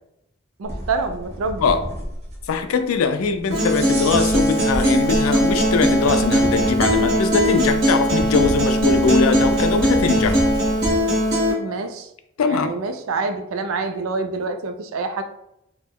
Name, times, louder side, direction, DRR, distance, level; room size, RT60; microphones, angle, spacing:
sound 1, 0.6-11.0, right 1 dB, 30° right, 0.6 m, -31 dB
voice 1, 0.6-1.8 11.6-12.1 12.5-15.2, right 4 dB, 80° right, 8 dB, 0.4 m, -27 dB
voice 2, 2.5-10.4 12.4-12.7, left 5 dB, 85° left, 8 dB, 0.4 m, -21 dB
Acoustic guitar, 3.5-11.5, equal, 50° right, 1.1 m, -19 dB
2.9 x 2.1 x 3.5 m, 0.80 s
head